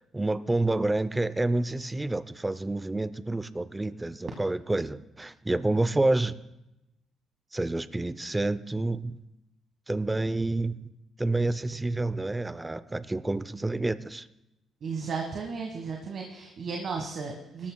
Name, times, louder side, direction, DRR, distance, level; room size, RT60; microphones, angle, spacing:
voice 1, 0.1-6.4 7.5-9.1 9.9-10.7 11.2-14.3, right 2 dB, 15° right, 15 dB, 0.5 m, -28 dB
voice 2, 14.8-17.7, right 5 dB, 60° right, 1 dB, 1.4 m, -34 dB
19.0 x 13.0 x 2.3 m, 0.92 s
cardioid pair, 90°, 0 cm